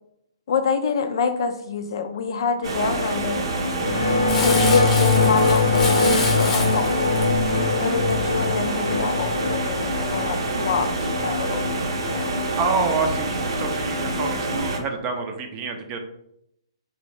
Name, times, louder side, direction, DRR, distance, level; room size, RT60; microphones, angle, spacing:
voice 1, 0.5-3.5 4.3-7.1 7.8-10.9 11.2-11.8 12.1-12.4, left 5 dB, 55° left, 8 dB, 0.4 m, -26 dB
sound 1, 2.6-14.8, right 1 dB, 60° right, 0.7 m, -27 dB
sound 2, 3.7-12.4, left 3 dB, 85° left, 0.7 m, -23 dB
Crumpling crinkling, 4.3-8.8 9.3-9.4, left 3 dB, 15° left, 0.7 m, -29 dB
voice 2, 12.6-16.0, right 4 dB, 25° right, 4 dB, 0.5 m, -27 dB
3.1 x 2.6 x 3.0 m, 0.76 s
hypercardioid pair, 135°, 3 cm